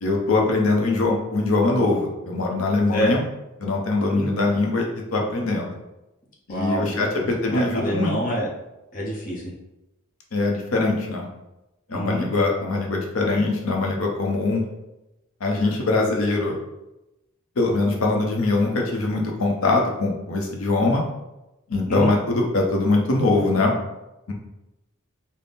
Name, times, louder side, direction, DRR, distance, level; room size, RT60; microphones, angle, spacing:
voice 1, 0.0-3.2 3.6-4.9 5.1-5.8 6.5-8.1 10.3-11.3 11.9-14.6 15.4-16.6 17.6-21.0 21.7-23.7 24.3-24.4, left 2 dB, 75° left, 0 dB, 0.7 m, -22 dB
voice 2, 6.5-8.5 8.9-9.4 11.9-12.3 21.9-22.1, equal, 40° left, -4 dB, 0.8 m, -27 dB
4.0 x 2.1 x 3.5 m, 0.95 s
head